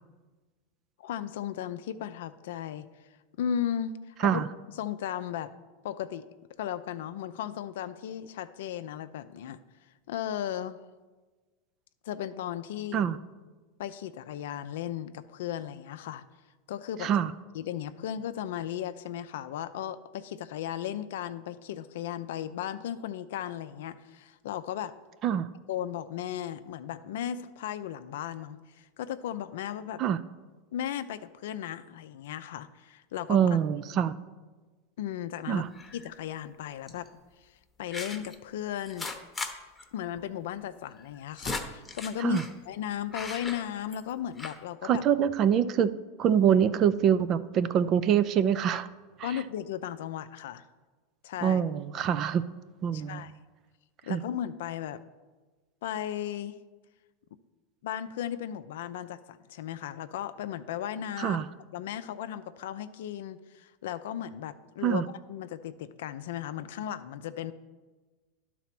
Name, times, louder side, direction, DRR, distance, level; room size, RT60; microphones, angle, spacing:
voice 1, 1.0-2.9 3.4-4.4 4.8-5.5 5.8-6.3 6.6-9.6 10.1-10.8 12.0-13.0 13.8-16.2 16.7-17.1 17.5-24.9 25.7-30.0 30.7-33.4 35.0-35.6 35.9-37.1 37.8-39.1 39.9-45.0 49.2-50.7 51.2-51.6 52.9-53.3 54.0-55.0 55.8-56.5 57.8-61.4 61.7-67.5, left 10 dB, 75° left, 12 dB, 0.5 m, -36 dB
voice 2, 33.3-34.1 35.5-35.7 42.2-42.4 44.8-45.9 46.2-48.9 49.2-49.3 51.4-52.4 52.8-53.2 54.1-54.2 61.2-61.4 64.8-65.0, right 8 dB, 40° right, 14 dB, 0.5 m, -25 dB
sound 1, 35.7-36.1 36.9-37.1 37.9-38.3 38.8-39.5 39.8-39.9 40.2-40.3 41.0-42.5 43.1-44.1 44.4-44.6, left 3 dB, 15° left, 0.9 m, -38 dB
11.5 x 4.2 x 5.9 m, 1.3 s
hypercardioid pair, 105°, 0 cm